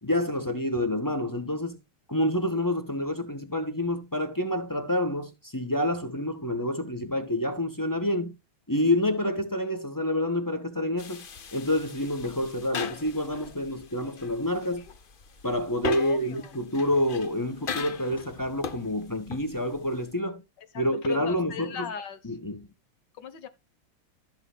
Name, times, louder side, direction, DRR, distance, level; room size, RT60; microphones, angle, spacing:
voice 1, 0.0-1.8 2.1-8.3 8.7-11.3 11.5-14.8 15.4-20.4 20.7-21.9 22.2-22.7, left 1 dB, 10° left, 1.2 m, -28 dB
sound 1, 11.0-20.1, left 6 dB, 85° left, 0.4 m, -39 dB
voice 2, 16.0-16.5 20.7-22.2 23.2-23.5, left 8 dB, 60° left, 1.8 m, -38 dB
15.0 x 6.9 x 2.3 m
omnidirectional pair, 2.2 m